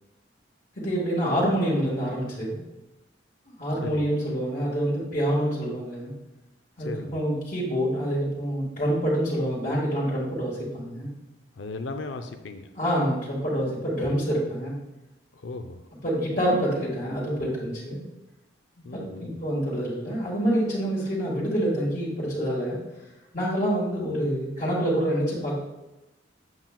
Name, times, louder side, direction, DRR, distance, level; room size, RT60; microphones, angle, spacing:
voice 1, 0.8-2.6 3.6-6.1 6.8-11.1 12.8-14.7 16.0-18.0 18.9-22.8 23.3-25.5, equal, 45° left, -6 dB, 1.8 m, -26 dB
voice 2, 6.8-7.2 11.5-12.7 15.3-15.8 18.8-19.4, left 3 dB, 80° left, 7 dB, 0.5 m, -36 dB
7.8 x 7.3 x 2.3 m, 0.98 s
head